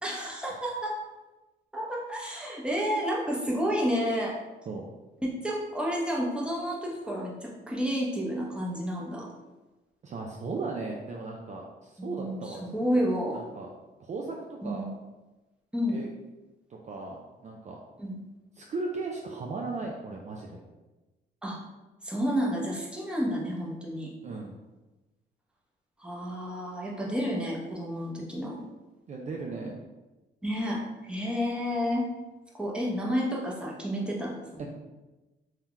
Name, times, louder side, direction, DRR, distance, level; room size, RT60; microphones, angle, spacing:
voice 1, 0.0-1.0 1.7-4.4 5.2-9.3 12.0-13.4 14.6-14.9 15.7-16.0 18.0-18.2 21.4-21.6 22.0-24.1 26.0-28.6 30.4-32.1 32.5-34.7, equal, 5° right, -3 dB, 0.8 m, -30 dB
voice 2, 10.0-12.6 12.9-13.1 13.3-13.7 14.0-14.9 15.9-16.1 16.7-17.8 18.6-20.6 24.2-24.6 29.1-29.8, right 3 dB, 35° right, -1 dB, 0.4 m, -37 dB
2.8 x 2.3 x 3.5 m, 1.1 s
cardioid pair, 90°, 20 cm